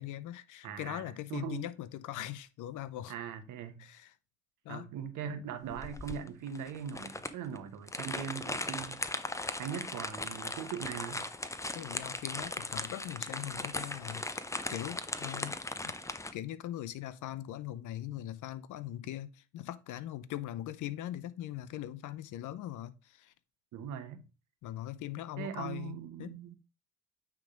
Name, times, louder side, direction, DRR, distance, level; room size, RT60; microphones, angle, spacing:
voice 1, 0.0-3.1 3.8-4.1 4.6-4.9 11.7-15.6 16.3-23.3 24.6-26.3, left 13 dB, 80° left, 0.7 m, -41 dB
voice 2, 0.6-1.0 1.3-1.7 3.1-3.8 4.7-9.2 9.6-11.2 23.7-24.2 25.4-26.6, right 8 dB, 85° right, 1.1 m, -40 dB
sound 1, 5.7-16.3, left 2 dB, 10° left, 0.7 m, -38 dB
9.1 x 3.5 x 5.0 m
cardioid pair, 90°, 30 cm